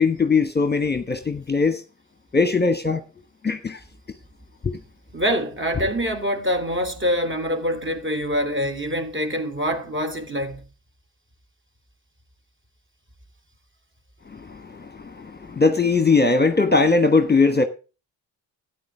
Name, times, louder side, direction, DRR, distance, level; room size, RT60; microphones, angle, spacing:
voice 1, 0.0-1.8 2.3-3.0 3.4-3.8 4.6-4.7 14.3-17.6, left 4 dB, 20° left, 1.3 m, -20 dB
voice 2, 5.1-10.6, equal, 25° right, 3.2 m, -25 dB
13.0 x 9.6 x 3.6 m
hypercardioid pair, 40°, 47 cm